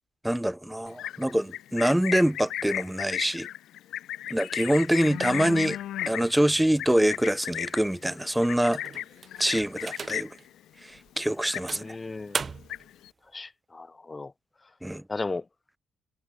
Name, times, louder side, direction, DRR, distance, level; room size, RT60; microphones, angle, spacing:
voice 1, 0.2-3.5 4.3-5.8 6.1-8.8 9.4-10.4 10.8-12.0 14.8-15.0, right 1 dB, 5° right, 2.2 m, -25 dB
Livestock farm animals working animals, 0.9-10.5 10.8-11.1 11.4-12.1 12.4-13.1, left 12 dB, 80° left, 2.1 m, -35 dB
sound 1, 8.7-10.4 11.0-11.1 11.7-12.9, right 5 dB, 40° right, 1.8 m, -37 dB
voice 2, 11.8-12.4 13.3-14.3 15.1-15.4, left 3 dB, 25° left, 2.5 m, -35 dB
cardioid pair, 90°, 0 cm